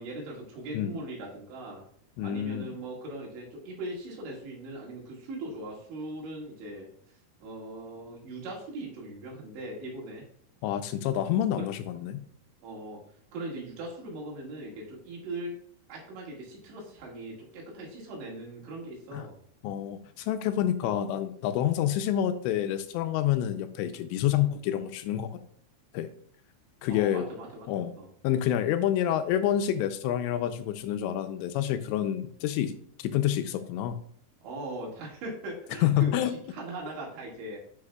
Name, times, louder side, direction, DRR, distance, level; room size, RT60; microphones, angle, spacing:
voice 1, 0.0-1.8 2.2-6.9 7.4-10.2 11.6-11.7 12.6-13.0 13.3-15.6 15.9-19.4 20.8-21.0 21.8-21.9 26.9-28.1 34.4-37.6, right 2 dB, 85° right, -3 dB, 4.3 m, -40 dB
voice 2, 2.2-2.7 10.6-12.3 19.1-19.3 19.6-25.3 25.9-26.1 26.8-27.3 27.7-27.9 28.2-32.7 33.0-34.0 35.8-36.4, left 11 dB, 85° left, 10 dB, 2.7 m, -28 dB
11.5 x 5.6 x 2.3 m, 0.62 s
omnidirectional pair, 5.2 m